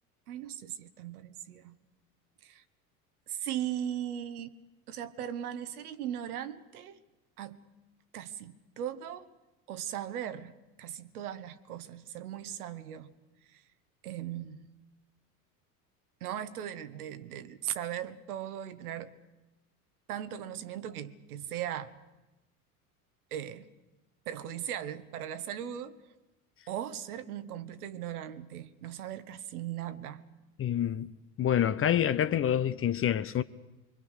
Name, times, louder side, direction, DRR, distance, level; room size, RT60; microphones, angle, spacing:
voice 1, 0.3-1.7 2.4-2.6 3.3-4.5 4.9-7.0 7.4-7.7 8.1-9.3 9.7-13.1 13.5-13.6 14.0-14.7 16.2-19.1 20.1-21.9 23.3-23.7 24.3-26.0 26.7-30.2, right 10 dB, 70° right, 1.4 m, -38 dB
voice 2, 30.6-31.1 31.4-33.4, left 10 dB, 30° left, 0.9 m, -27 dB
25.0 x 23.5 x 6.6 m
figure-of-eight pair, 75°, 46 cm